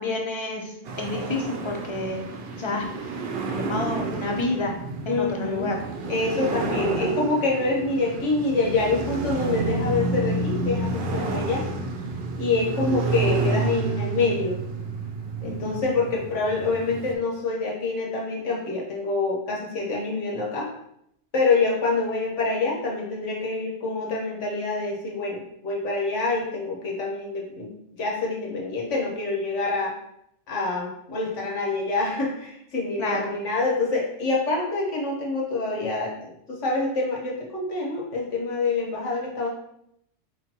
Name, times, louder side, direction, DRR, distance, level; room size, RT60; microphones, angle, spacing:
voice 1, 0.0-2.2 2.5-2.8 3.5-4.8 5.1-5.8 15.4-15.8 33.0-33.2, left 2 dB, 30° left, 1 dB, 0.6 m, -29 dB
sound 1, 0.9-17.1, right 3 dB, 60° right, 0.8 m, -30 dB
voice 2, 5.1-5.7 6.1-11.7 12.4-14.6 15.4-20.7 21.3-27.7 28.0-29.9 30.5-39.5, left 3 dB, 85° left, -2 dB, 1.5 m, -26 dB
4.8 x 3.8 x 2.9 m, 0.75 s
omnidirectional pair, 1.2 m